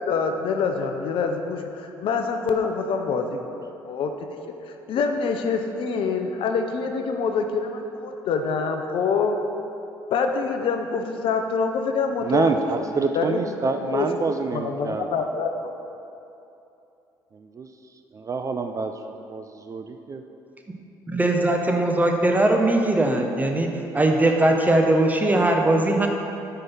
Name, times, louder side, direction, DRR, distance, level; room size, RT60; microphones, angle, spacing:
voice 1, 0.0-4.1 4.9-9.3 10.1-12.9 13.1-13.5 13.9-14.1 14.5-15.5, left 5 dB, 55° left, 5 dB, 0.5 m, -25 dB
voice 2, 12.2-15.2 17.3-17.7 18.1-18.9 19.3-20.2, right 4 dB, 30° right, 6 dB, 0.3 m, -27 dB
voice 3, 21.1-23.7 23.9-26.1, right 1 dB, 15° right, 2 dB, 0.8 m, -20 dB
4.7 x 4.4 x 5.5 m, 2.8 s
hypercardioid pair, 50°, 10 cm